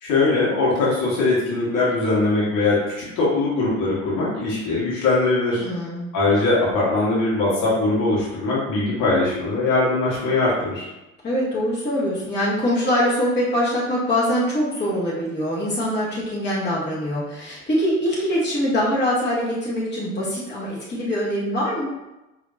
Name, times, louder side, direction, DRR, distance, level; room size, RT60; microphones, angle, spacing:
voice 1, 0.0-5.6 6.1-10.9, left 3 dB, 50° left, -6 dB, 1.4 m, -21 dB
voice 2, 5.6-6.1 11.2-21.9, equal, 25° left, -6 dB, 1.4 m, -23 dB
5.0 x 2.8 x 2.6 m, 0.97 s
figure-of-eight pair, 60°, 40 cm